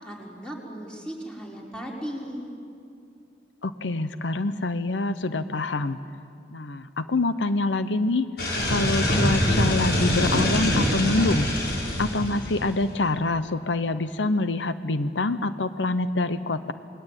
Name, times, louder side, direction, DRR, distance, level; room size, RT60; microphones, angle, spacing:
voice 1, 0.0-2.5, equal, 5° left, -1 dB, 4.6 m, -36 dB
voice 2, 3.6-6.0 6.5-8.3 8.7-11.5 12.0-16.7, left 2 dB, 80° left, 12 dB, 0.9 m, -26 dB
sound 1, 8.4-12.8, left 1 dB, 60° left, 6.0 m, -24 dB
28.5 x 21.0 x 9.1 m, 2.6 s
head